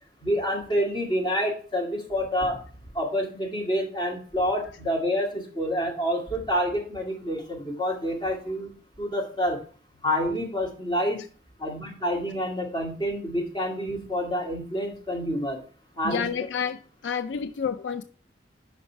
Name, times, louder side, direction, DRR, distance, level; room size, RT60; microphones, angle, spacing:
voice 1, 0.2-2.6 2.9-8.7 9.0-9.6 10.0-11.2 11.6-15.6 16.0-16.2, equal, 25° left, 2.2 m, -28 dB
voice 2, 16.0-18.0, left 7 dB, 75° left, 0.4 m, -29 dB
5.4 x 5.4 x 5.6 m
head